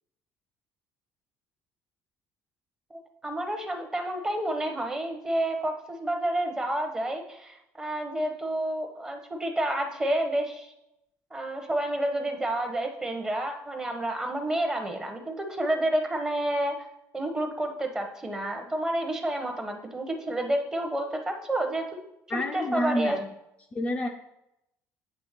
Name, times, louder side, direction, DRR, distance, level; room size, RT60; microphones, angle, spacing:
voice 1, 2.9-10.7 11.3-16.7 17.1-21.9 22.3-23.2, right 1 dB, 10° right, 4 dB, 1.0 m, -29 dB
voice 2, 22.3-23.2 23.7-24.1, left 1 dB, 20° left, 2 dB, 0.6 m, -28 dB
8.6 x 3.4 x 6.7 m, 0.84 s
cardioid pair, 155°, 6 cm